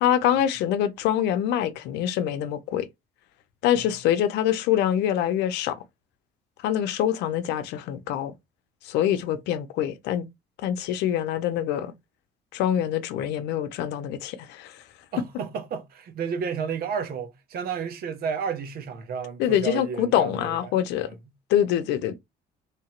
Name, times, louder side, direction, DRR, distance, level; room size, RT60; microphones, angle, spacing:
voice 1, 0.0-2.9 3.6-5.8 6.6-8.3 8.8-10.3 10.6-11.9 12.5-14.8 19.4-21.1 21.5-22.2, left 10 dB, 85° left, 0.7 m, -25 dB
voice 2, 15.1-20.8, right 6 dB, 65° right, 0.9 m, -32 dB
3.3 x 2.9 x 4.4 m
cardioid pair, 110°, 17 cm